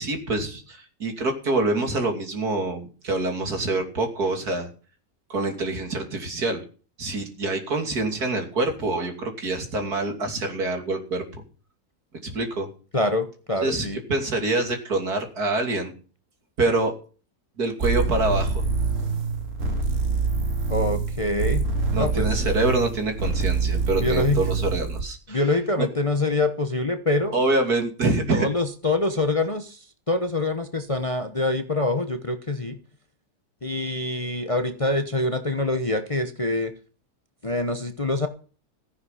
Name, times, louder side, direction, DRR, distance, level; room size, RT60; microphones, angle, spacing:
voice 1, 0.0-4.7 5.3-6.6 7.0-11.4 12.2-12.7 13.6-15.9 16.6-16.9 17.6-18.6 21.9-25.4 25.8-25.9 27.3-28.5, right 2 dB, 75° right, 4 dB, 3.3 m, -26 dB
voice 2, 12.9-14.0 20.7-22.3 23.9-24.4 25.3-27.4 28.3-32.8 33.6-36.7 37.4-38.3, left 2 dB, 25° left, 8 dB, 0.9 m, -25 dB
sound 1, 17.8-25.1, right 4 dB, 55° right, 2.2 m, -25 dB
14.5 x 9.9 x 5.7 m, 0.38 s
omnidirectional pair, 1.6 m